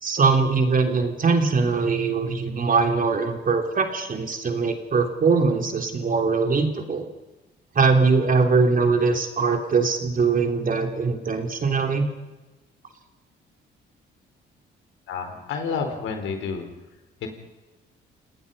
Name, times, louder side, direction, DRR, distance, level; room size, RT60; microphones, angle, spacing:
voice 1, 0.0-7.0 7.7-12.1, right 4 dB, 45° right, 4 dB, 3.6 m, -21 dB
voice 2, 15.1-16.7, left 5 dB, 85° left, 5 dB, 4.4 m, -29 dB
28.5 x 19.0 x 5.5 m, 1.1 s
cardioid pair, 90°, 20 cm